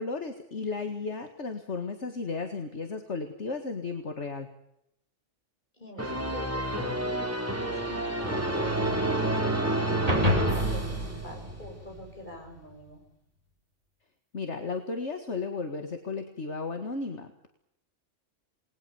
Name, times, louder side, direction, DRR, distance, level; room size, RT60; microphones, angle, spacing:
voice 1, 0.0-4.5 14.3-17.5, left 4 dB, 65° left, 6 dB, 2.2 m, -34 dB
voice 2, 5.8-8.8 9.4-13.0, left 1 dB, 40° left, 2 dB, 7.6 m, -45 dB
sound 1, 6.0-11.6, right 1 dB, 10° right, 3.6 m, -29 dB
sound 2, 10.1-12.6, left 1 dB, 30° right, 3.6 m, -29 dB
28.5 x 20.5 x 7.1 m, 0.81 s
omnidirectional pair, 1.3 m